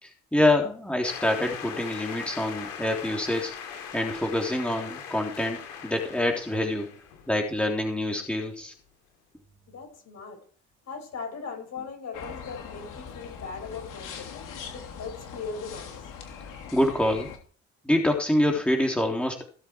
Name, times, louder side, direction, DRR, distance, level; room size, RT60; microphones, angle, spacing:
voice 1, 0.0-3.5 3.9-6.9 7.3-8.7 16.7-17.3 17.9-19.4, left 1 dB, 5° left, 1 dB, 3.4 m, -26 dB
sound 1, 1.0-7.8, left 7 dB, 90° left, 2.8 m, -40 dB
voice 2, 9.7-10.4 10.9-14.3 14.7-16.0, left 5 dB, 55° left, 4 dB, 6.0 m, -39 dB
sound 2, 12.1-17.4, left 7 dB, 75° left, 3.1 m, -41 dB
17.5 x 8.0 x 4.7 m, 0.43 s
supercardioid pair, 65°, 32 cm